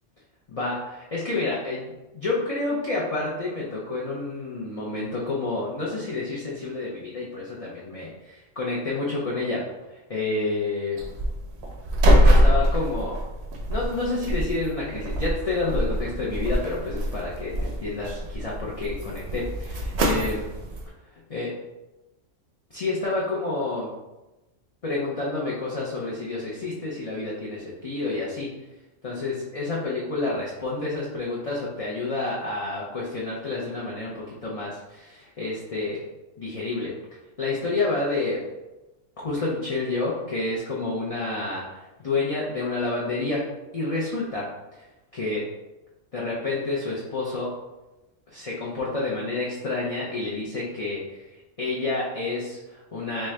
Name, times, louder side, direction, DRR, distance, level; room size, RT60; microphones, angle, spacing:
voice 1, 0.5-9.6 9.9-11.0 12.1-13.2 13.7-20.5 21.1-21.5 22.7-23.9 24.8-28.5 29.0-36.0 36.4-36.9 37.4-38.4 39.2-43.4 43.7-44.5 45.1-45.4 46.1-47.5 48.3-51.2 51.6-53.3, left 3 dB, 40° left, -5 dB, 0.5 m, -29 dB
sound 1, 11.0-20.9, equal, 65° right, 0.8 m, -24 dB
4.3 x 2.5 x 3.2 m, 1.0 s
omnidirectional pair, 1.3 m